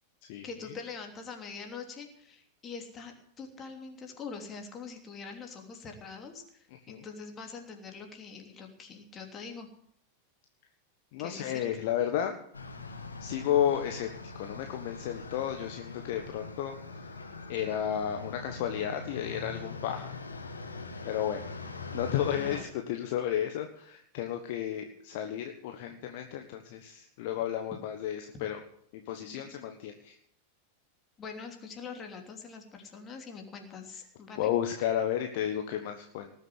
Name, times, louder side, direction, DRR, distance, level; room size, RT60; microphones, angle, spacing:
voice 1, 0.4-9.7 11.2-11.7 22.3-22.6 29.2-29.4 31.2-34.5, left 5 dB, 25° left, 3 dB, 3.1 m, -44 dB
voice 2, 11.1-12.4 13.2-17.1 17.5-20.1 21.0-21.4 21.9-28.6 28.9-30.1 34.4-36.3, left 10 dB, 50° left, 5 dB, 1.4 m, -32 dB
sound 1, 12.5-22.6, left 3 dB, 80° left, 1.9 m, -42 dB
19.0 x 7.5 x 7.8 m, 0.67 s
figure-of-eight pair, 90°, 0 cm